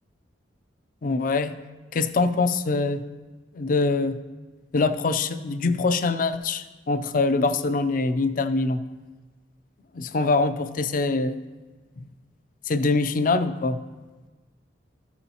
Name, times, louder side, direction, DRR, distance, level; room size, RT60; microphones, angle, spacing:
voice 1, 1.0-1.6 1.9-3.0 3.5-4.2 4.7-8.8 9.9-11.4 12.0-12.1 12.7-13.8, left 3 dB, 45° left, 11 dB, 0.4 m, -24 dB
13.5 x 7.0 x 2.9 m, 1.3 s
head